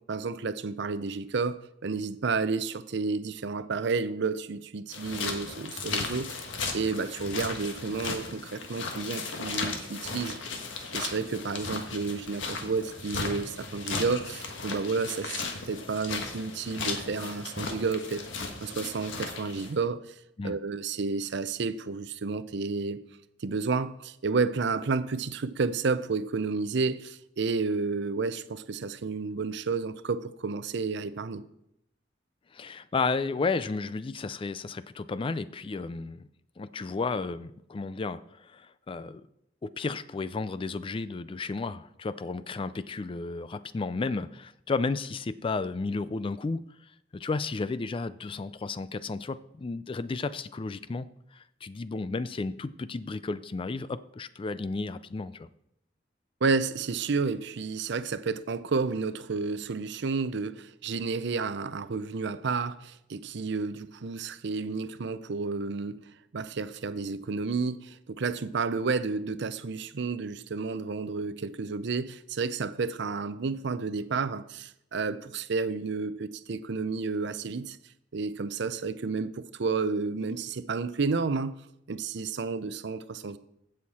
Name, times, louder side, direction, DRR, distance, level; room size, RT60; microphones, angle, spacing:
voice 1, 0.1-6.4 6.7-10.4 10.9-18.3 18.6-20.1 20.4-23.0 23.4-31.4 56.4-66.0 66.3-77.8 78.1-81.6 81.9-83.4, right 4 dB, 65° right, 0.6 m, -31 dB
sound 1, 4.9-19.7, left 4 dB, 80° left, 1.5 m, -36 dB
voice 2, 32.5-36.3 36.6-39.3 39.6-46.6 47.1-51.1 51.3-55.5, left 3 dB, 30° left, 0.3 m, -33 dB
15.5 x 6.4 x 4.2 m
head